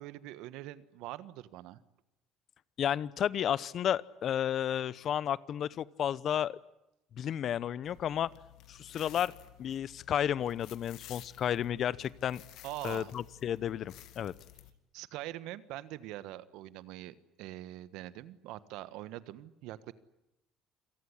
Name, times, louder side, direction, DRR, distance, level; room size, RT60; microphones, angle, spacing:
voice 1, 0.0-1.8 12.6-13.1 14.9-19.9, right 15 dB, 80° right, 16 dB, 1.4 m, -43 dB
voice 2, 2.8-6.6 7.2-8.3 8.7-9.3 9.6-12.4 12.8-14.3, left 10 dB, 50° left, 21 dB, 0.9 m, -32 dB
sound 1, 7.8-14.7, left 14 dB, 70° left, 2.2 m, -53 dB
28.0 x 18.5 x 10.0 m, 0.90 s
cardioid pair, 105°, 0 cm